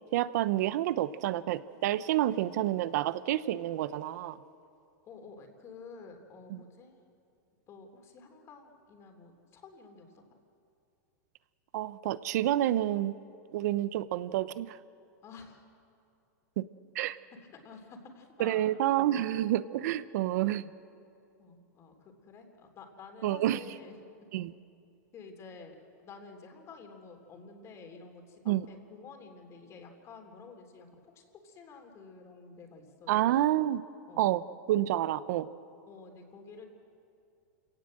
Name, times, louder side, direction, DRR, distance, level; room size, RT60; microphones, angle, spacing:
voice 1, 0.1-4.4 6.5-6.6 11.7-13.1 13.5-14.8 16.6-16.7 16.9-17.2 18.4-20.7 23.2-23.6 24.3-24.5 28.5-28.7 33.1-33.8 34.2-34.4 34.7-35.5, right 13 dB, 65° right, 15 dB, 0.9 m, -29 dB
voice 2, 5.0-7.0 7.7-10.2 15.2-15.6 17.6-18.7 21.4-24.0 25.1-25.8 26.0-30.9 31.1-33.3 34.1-34.2 35.9-36.7, left 4 dB, 30° left, 4 dB, 3.5 m, -50 dB
28.0 x 17.5 x 7.8 m, 2.5 s
supercardioid pair, 135°, 10 cm